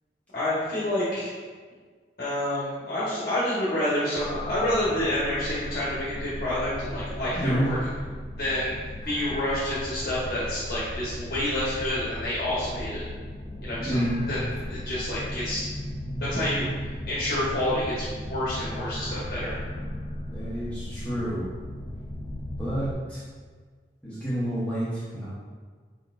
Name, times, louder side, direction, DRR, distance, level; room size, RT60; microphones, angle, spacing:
voice 1, 0.3-1.3 2.2-7.8 8.4-13.0 13.6-14.0 14.3-15.6 16.2-19.6, left 1 dB, 55° left, -9 dB, 1.1 m, -28 dB
sound 1, 4.1-22.9, left 1 dB, 25° left, 0.4 m, -36 dB
voice 2, 7.3-7.7 13.9-14.3 20.3-21.5 22.6-23.2 24.0-25.3, equal, 10° left, -11 dB, 0.8 m, -29 dB
5.0 x 4.2 x 2.5 m, 1.5 s
head